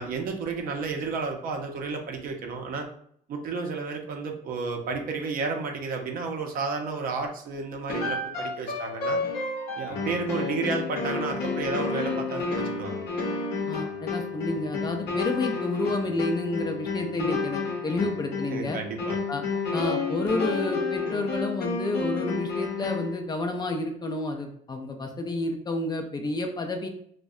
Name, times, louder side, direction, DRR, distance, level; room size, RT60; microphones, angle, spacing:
voice 1, 0.0-2.9 3.3-9.2 9.8-13.0 18.5-19.2, right 4 dB, 55° right, 3 dB, 0.5 m, -32 dB
sound 1, 7.9-23.2, left 4 dB, 80° left, 0.7 m, -30 dB
voice 2, 13.7-18.8 19.3-19.4 19.7-26.9, left 2 dB, 25° left, 3 dB, 0.3 m, -30 dB
2.6 x 2.1 x 2.4 m, 0.66 s
cardioid pair, 110°, 17 cm